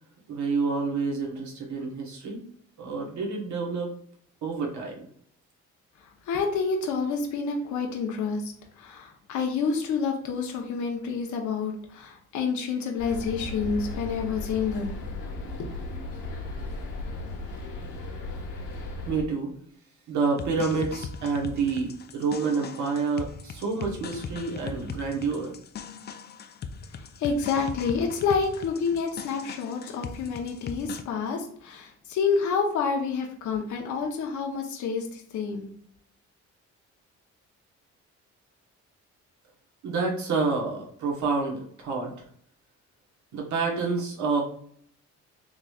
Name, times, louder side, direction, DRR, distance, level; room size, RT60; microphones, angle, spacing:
voice 1, 0.3-2.4 2.8-3.9 4.4-5.1 19.1-19.5 20.1-25.5 39.8-42.1 43.3-44.4, right 4 dB, 70° right, -1 dB, 1.2 m, -28 dB
voice 2, 6.0-15.0 15.6-15.8 26.9-35.7, left 5 dB, 75° left, 1 dB, 0.8 m, -28 dB
sound 1, 13.0-19.2, left 2 dB, 90° left, 1.1 m, -36 dB
sound 2, 20.4-31.0, left 5 dB, 35° left, 0.4 m, -39 dB
3.8 x 3.2 x 2.3 m, 0.63 s
cardioid pair, 90°, 30 cm